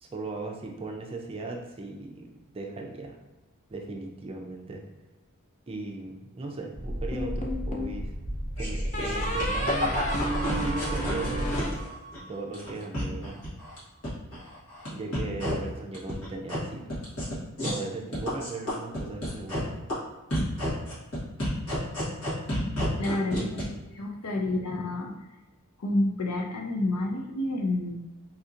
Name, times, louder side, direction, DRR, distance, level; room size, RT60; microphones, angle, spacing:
voice 1, 0.0-3.2 3.7-4.8 5.7-8.1 8.6-11.6 12.3-13.4 14.9-16.9 17.6-19.8 23.3-23.8 24.4-24.5, right 3 dB, 25° right, 1 dB, 0.4 m, -38 dB
sound 1, 6.7-11.8, equal, 10° left, 0.8 m, -33 dB
sound 2, 7.1-8.0 8.9-12.4, equal, 35° left, 0.4 m, -32 dB
sound 3, 8.6-12.2 12.5-13.8 14.0-14.9 15.1-15.5 15.9-16.6 16.9-17.8 18.1-19.6 19.9-20.0 20.3-23.6, left 1 dB, 65° left, 1.3 m, -31 dB
voice 2, 23.0-23.7 23.9-25.1 25.8-27.9, left 2 dB, 85° left, 2 dB, 0.6 m, -29 dB
4.2 x 2.8 x 2.5 m, 1.1 s
head